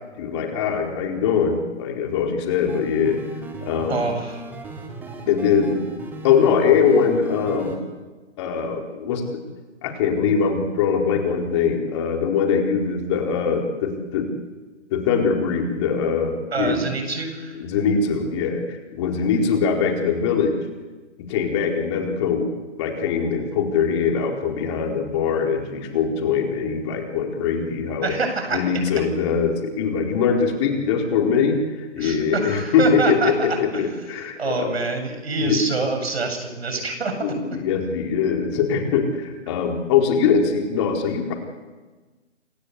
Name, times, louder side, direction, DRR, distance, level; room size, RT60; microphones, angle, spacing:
voice 1, 0.2-3.2 3.6-4.0 5.3-5.8 6.2-7.8 8.4-9.4 9.8-14.3 14.9-16.8 17.5-20.5 21.2-22.5 22.8-28.2 28.5-34.8 35.5-35.6 37.2-41.3, left 6 dB, 25° left, 2 dB, 4.4 m, -22 dB
sound 1, 2.6-7.8, right 2 dB, 5° right, 2.1 m, -37 dB
voice 2, 3.9-4.4 16.5-17.6 28.0-28.6 32.0-33.5 34.4-37.1, right 3 dB, 55° right, 6 dB, 7.9 m, -26 dB
28.5 x 23.5 x 8.4 m, 1.3 s
figure-of-eight pair, 150°, 37 cm